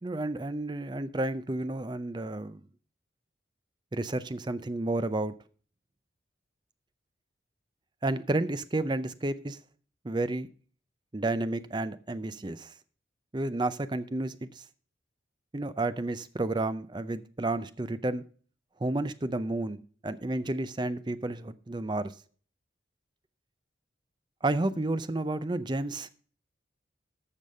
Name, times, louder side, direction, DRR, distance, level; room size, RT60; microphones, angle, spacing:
voice 1, 0.0-2.6 3.9-5.3 8.0-9.6 10.0-10.5 11.1-12.7 13.3-14.6 15.5-18.2 18.8-22.1 24.4-26.1, right 2 dB, 25° right, 13 dB, 0.5 m, -31 dB
14.0 x 5.3 x 5.4 m, 0.43 s
head